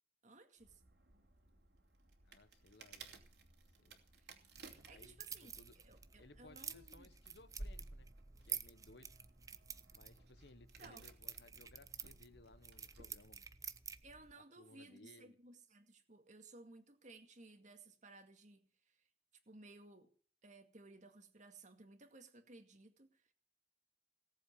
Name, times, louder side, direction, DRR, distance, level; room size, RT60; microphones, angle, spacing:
voice 1, 0.2-0.8 4.1-4.3 4.9-5.6 5.8-7.1 10.8-11.1 14.0-19.0 19.5-20.1 20.4-23.3, right 2 dB, 40° right, 2.1 m, -59 dB
sound 1, 0.6-13.2, right 4 dB, 60° right, 2.9 m, -62 dB
voice 2, 2.2-3.1 3.8-4.0 4.9-5.8 6.2-8.1 8.4-9.2 9.9-13.5 14.3-15.4, left 2 dB, 60° left, 1.3 m, -62 dB
sound 2, 4.5-14.3, right 6 dB, 20° right, 0.7 m, -50 dB
18.0 x 7.8 x 8.6 m
head